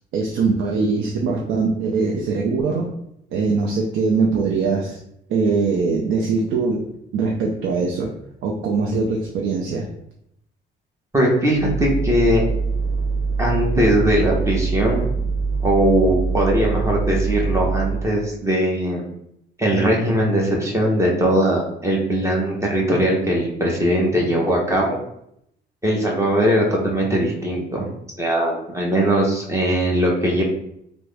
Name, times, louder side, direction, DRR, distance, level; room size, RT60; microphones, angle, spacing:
voice 1, 0.1-2.9 3.3-5.0 5.3-6.8 7.1-8.1 8.4-9.9, right 4 dB, 80° right, 0 dB, 0.5 m, -21 dB
voice 2, 11.1-12.4 13.4-15.1 15.6-19.0 19.6-25.0 25.8-27.8 28.2-30.4, right 1 dB, 15° right, -2 dB, 1.0 m, -20 dB
sound 1, 11.5-18.1, right 4 dB, 20° left, 0.7 m, -23 dB
3.4 x 2.1 x 3.3 m, 0.75 s
cardioid pair, 90°, 20 cm